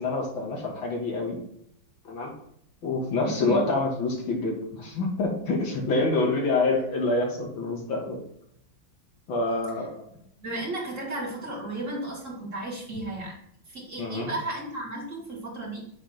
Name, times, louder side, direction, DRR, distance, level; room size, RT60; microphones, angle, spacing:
voice 1, 0.0-1.4 2.1-2.3 2.8-8.2 9.3-10.0 14.0-14.3, left 2 dB, 85° left, 0 dB, 2.7 m, -27 dB
voice 2, 3.2-3.6 10.4-13.4 13.7-15.9, right 2 dB, 40° right, -3 dB, 2.9 m, -34 dB
8.7 x 3.6 x 5.7 m, 0.71 s
omnidirectional pair, 2.1 m